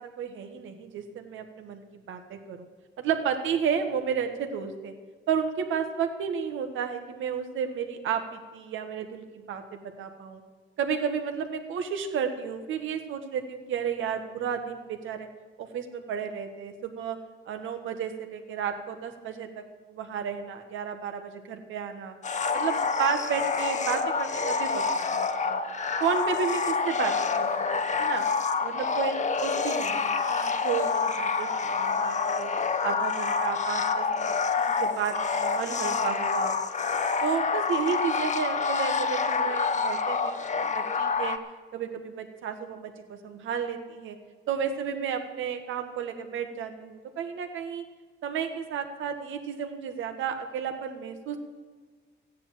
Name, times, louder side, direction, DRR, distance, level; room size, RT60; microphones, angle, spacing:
voice 1, 0.2-2.7 3.0-4.9 5.3-10.4 10.8-15.3 15.6-17.2 17.4-19.6 19.9-22.2 22.5-25.6 26.0-28.2 28.6-32.5 32.8-34.3 34.7-36.5 37.2-41.4 41.7-44.2 44.5-47.8 48.2-51.4, right 7 dB, 80° right, 6 dB, 1.7 m, -32 dB
sound 1, 22.2-41.4, left 5 dB, 35° left, 1.1 m, -27 dB
14.0 x 9.6 x 7.4 m, 1.5 s
cardioid pair, 90°, 20 cm